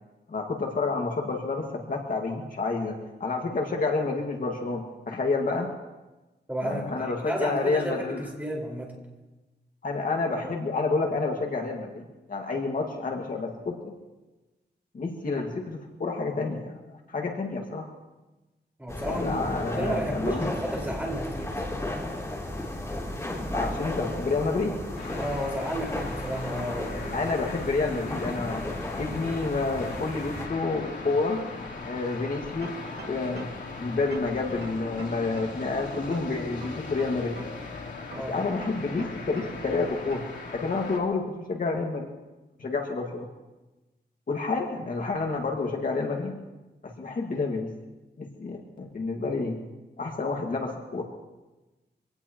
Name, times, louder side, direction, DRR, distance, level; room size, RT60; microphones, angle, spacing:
voice 1, 0.3-5.7 6.6-8.2 9.8-13.9 14.9-17.9 19.1-20.5 23.5-24.8 27.1-28.7 29.0-31.4 31.8-32.8 33.1-33.4 33.8-37.4 38.1-40.2 40.5-42.1 42.6-43.3 44.3-46.3 46.8-47.7 48.2-49.6 50.0-51.0, left 3 dB, 50° left, 1 dB, 1.9 m, -29 dB
voice 2, 6.5-8.9 18.8-19.4 19.7-21.8 25.2-27.3 38.1-38.3, equal, 10° right, -2 dB, 4.8 m, -33 dB
sound 1, 18.9-30.5, left 1 dB, 15° left, 3.3 m, -34 dB
sound 2, 25.0-41.0, left 4 dB, 90° left, 3.4 m, -40 dB
sound 3, 32.6-33.7 34.1-35.7 36.1-37.7 38.1-39.7 40.1-40.4, right 3 dB, 65° right, 2.3 m, -44 dB
25.5 x 18.0 x 3.0 m, 1.1 s
wide cardioid pair, 140°, 18 cm